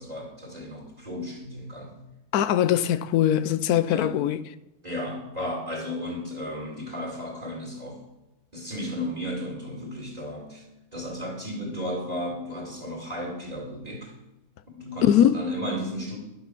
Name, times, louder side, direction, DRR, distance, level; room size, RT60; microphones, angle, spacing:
voice 1, 0.0-1.9 3.9-4.2 4.8-8.0 8.5-10.6 10.9-14.1 14.7-16.2, left 1 dB, 25° right, 2.6 m, -34 dB
voice 2, 2.3-4.4 15.0-15.4, left 10 dB, 85° left, 1.1 m, -21 dB
11.5 x 7.9 x 6.1 m
omnidirectional pair, 1.6 m